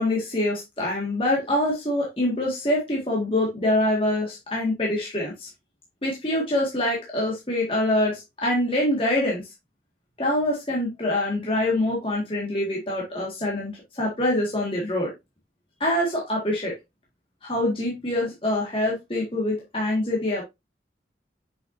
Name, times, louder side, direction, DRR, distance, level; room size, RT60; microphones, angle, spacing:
voice 1, 0.0-5.5 6.0-9.4 10.2-15.1 15.8-16.7 17.4-20.4, left 1 dB, 30° left, -2 dB, 1.7 m, -25 dB
6.6 x 5.8 x 2.6 m, 0.20 s
head